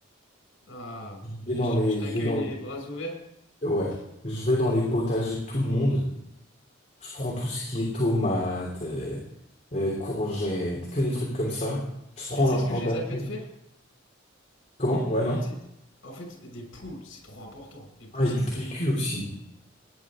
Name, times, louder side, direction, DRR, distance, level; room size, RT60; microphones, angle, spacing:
voice 1, 0.7-1.2 1.5-3.2 12.5-13.4 15.4-15.5 16.0-18.3, equal, 85° left, 2 dB, 6.7 m, -39 dB
voice 2, 1.2-2.5 3.6-4.0 4.2-6.1 7.0-9.2 9.7-11.8 12.2-13.2 14.8-15.4 18.1-19.3, left 1 dB, 40° left, -3 dB, 3.2 m, -27 dB
18.5 x 11.0 x 3.7 m, 0.80 s
head